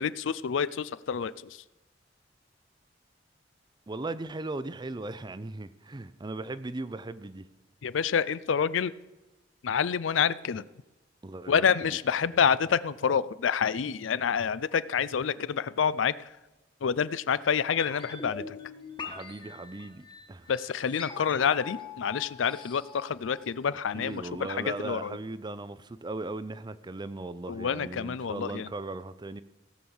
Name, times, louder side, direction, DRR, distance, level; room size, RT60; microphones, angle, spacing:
voice 1, 0.0-1.3 7.8-8.9 9.6-10.6 11.5-16.1 16.8-18.5 20.5-24.2 24.5-25.2 27.5-28.7, left 7 dB, 80° left, 0.5 m, -28 dB
voice 2, 3.9-7.5 11.2-12.5 19.0-20.5 23.7-29.4, right 2 dB, 25° right, 0.5 m, -38 dB
sound 1, 17.8-23.8 24.1-24.2, left 4 dB, 25° left, 1.4 m, -43 dB
17.0 x 6.3 x 7.1 m
head